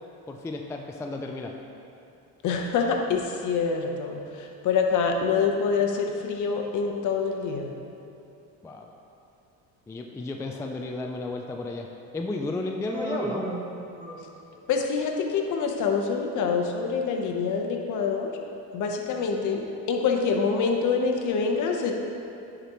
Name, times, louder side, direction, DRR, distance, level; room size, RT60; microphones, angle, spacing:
voice 1, 0.3-1.6 8.6-8.9 9.9-13.5, left 2 dB, 10° left, 2 dB, 0.3 m, -33 dB
voice 2, 2.4-7.7 14.7-18.3 18.7-21.9, left 5 dB, 55° left, 2 dB, 0.9 m, -26 dB
Human voice, 12.9-14.6, right 1 dB, 15° right, 0.9 m, -34 dB
10.0 x 4.9 x 3.0 m, 2.8 s
cardioid pair, 115°, 35 cm